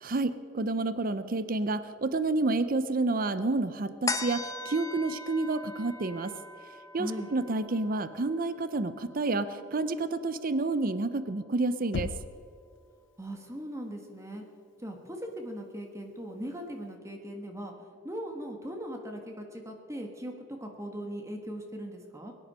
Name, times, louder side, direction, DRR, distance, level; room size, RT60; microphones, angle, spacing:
voice 1, 0.0-6.3 6.9-12.1, right 2 dB, 50° right, 12 dB, 0.7 m, -29 dB
sound 1, 4.1-10.8 11.3-11.4, left 3 dB, 20° left, 0.8 m, -40 dB
voice 2, 7.0-7.3 13.2-14.4 14.8-17.7 18.0-22.3, equal, 15° right, 3 dB, 1.4 m, -39 dB
Knock, 11.9-12.6, left 4 dB, 70° left, 0.5 m, -35 dB
22.5 x 9.8 x 5.6 m, 2.3 s
head